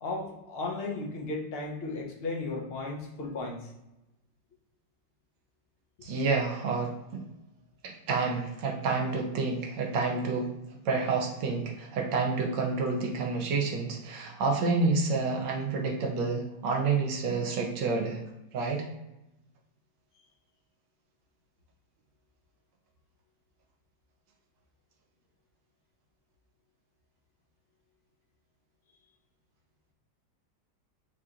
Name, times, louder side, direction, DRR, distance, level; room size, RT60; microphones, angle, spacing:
voice 1, 0.0-3.7, left 3 dB, 50° left, 0 dB, 0.7 m, -35 dB
voice 2, 6.0-7.2 7.8-10.5 10.8-18.2 18.5-18.9, right 4 dB, 75° right, 1 dB, 1.4 m, -29 dB
6.0 x 2.9 x 2.5 m, 0.92 s
omnidirectional pair, 2.0 m